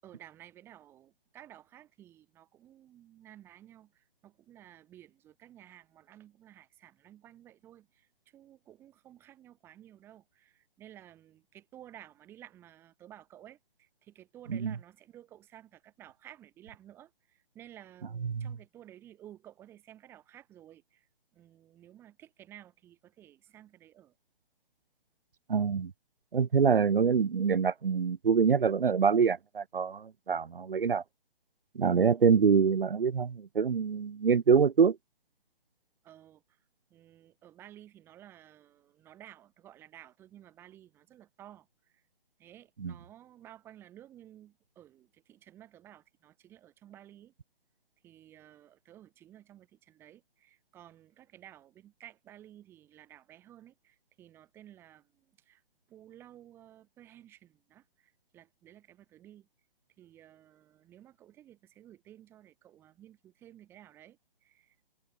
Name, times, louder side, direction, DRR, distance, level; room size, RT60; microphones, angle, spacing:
voice 1, 0.0-24.2 36.0-36.6 36.9-42.0 42.4-47.3 48.0-55.6 55.9-59.5 60.0-65.0, right 12 dB, 10° right, 7.6 m, -54 dB
voice 2, 25.5-25.9 26.3-31.0 31.7-35.0 42.8-42.9, right 6 dB, 65° right, 1.6 m, -25 dB
hypercardioid pair, 180°, 29 cm